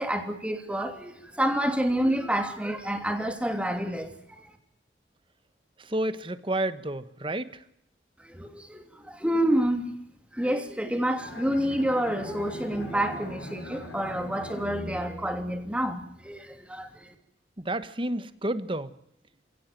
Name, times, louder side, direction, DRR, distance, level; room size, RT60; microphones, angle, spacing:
voice 1, 0.0-4.5 8.2-9.9 10.3-17.1, right 1 dB, 5° right, 3.0 m, -28 dB
voice 2, 5.8-7.5 17.6-18.9, right 1 dB, 30° right, 1.4 m, -30 dB
Bowed string instrument, 11.2-16.2, left 1 dB, 70° left, 7.7 m, -42 dB
29.0 x 17.5 x 9.3 m
head